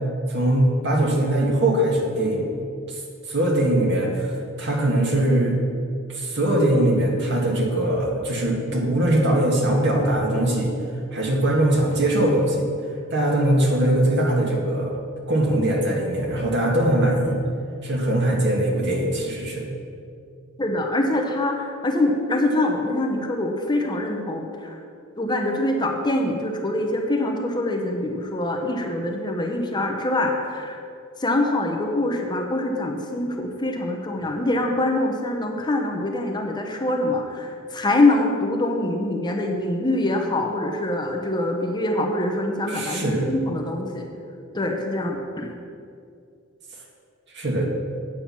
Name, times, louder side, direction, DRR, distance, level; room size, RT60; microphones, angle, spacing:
voice 1, 0.3-2.5 2.9-3.0 3.3-5.6 6.1-10.7 11.1-12.7 13.1-15.0 15.3-17.4 17.8-19.7 42.7-43.3 47.3-47.6, right 1 dB, 60° right, -1 dB, 1.8 m, -21 dB
voice 2, 20.6-24.8 25.2-30.8 31.2-44.1 44.5-45.5, left 1 dB, 20° left, 2 dB, 0.9 m, -24 dB
9.0 x 7.7 x 5.8 m, 2.4 s
head